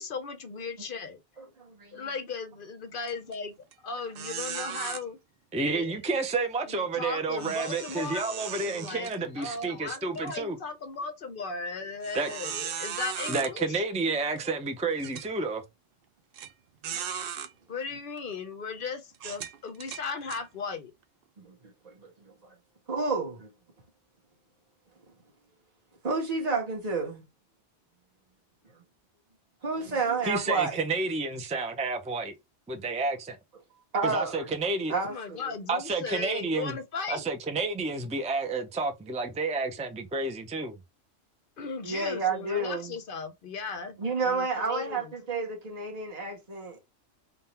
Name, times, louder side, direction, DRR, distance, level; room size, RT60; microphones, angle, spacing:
voice 1, 0.0-1.2 1.9-3.5 3.8-5.2 5.7-6.0 6.7-13.8 17.7-20.9 30.0-30.2 35.0-37.2 41.6-44.0 44.2-45.1, left 4 dB, 55° left, 0.7 m, -37 dB
voice 2, 1.4-2.2 8.8-9.0 14.1-14.4 16.9-17.1 21.4-21.5 21.8-22.5 22.9-23.5 26.0-27.2 29.6-30.8 33.9-34.6 34.9-35.5 41.8-43.0 44.0-46.8, right 4 dB, 35° right, 1.4 m, -31 dB
sound 1, 3.1-3.3 3.7-3.8 4.1-5.0 7.4-9.7 10.1-10.3 10.9-11.0 12.0-13.5 14.4-14.5 15.0-15.3 16.3-16.5 16.8-17.5 18.2-18.3 19.1-20.4, right 8 dB, 60° right, 0.7 m, -37 dB
voice 3, 5.5-10.6 12.1-12.3 13.3-15.6 30.2-32.3 32.7-33.4 34.0-34.9 35.7-36.8 37.1-40.8, right 3 dB, 10° right, 0.4 m, -30 dB
3.8 x 2.4 x 4.2 m
omnidirectional pair, 1.3 m